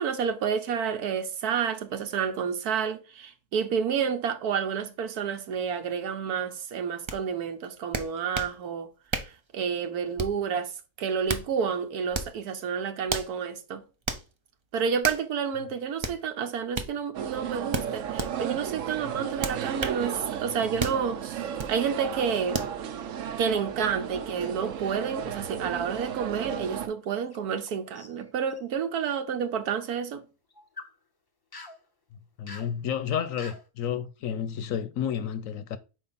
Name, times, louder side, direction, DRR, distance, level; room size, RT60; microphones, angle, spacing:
voice 1, 0.0-8.9 9.5-10.7 11.0-13.8 14.7-21.4 21.7-22.6 23.4-30.2, right 7 dB, 80° right, 1.3 m, -29 dB
sound 1, 7.1-7.2 7.9-8.6 9.1-9.4 10.2-10.5 11.1-11.5 12.1-12.4 13.1-13.3 14.1-14.3 15.0-15.3 16.0-16.2 16.7-16.9 17.7-18.3 19.4-20.0 20.8-21.0 21.6-21.8 22.5-22.7, right 3 dB, 45° right, 0.3 m, -32 dB
sound 2, 17.1-26.9, right 9 dB, 65° right, 1.0 m, -34 dB
sound 3, 27.0-27.7 28.0-28.6 30.5-30.9 31.5-31.8 32.5-32.7 33.4-33.7, left 3 dB, 35° left, 0.3 m, -45 dB
voice 2, 32.4-35.8, left 8 dB, 70° left, 1.0 m, -31 dB
5.5 x 4.5 x 4.1 m
omnidirectional pair, 1.6 m